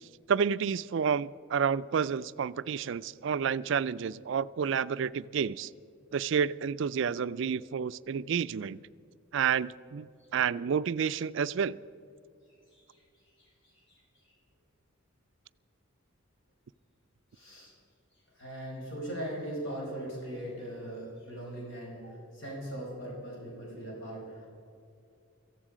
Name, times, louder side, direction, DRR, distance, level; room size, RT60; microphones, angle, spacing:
voice 1, 0.3-5.7 6.1-8.8 9.3-10.1 10.3-11.8, right 7 dB, 60° right, 17 dB, 0.3 m, -30 dB
voice 2, 12.7-14.4 17.3-17.7 18.3-24.5, right 1 dB, 55° left, -3 dB, 4.6 m, -40 dB
18.0 x 14.5 x 5.0 m, 2.5 s
head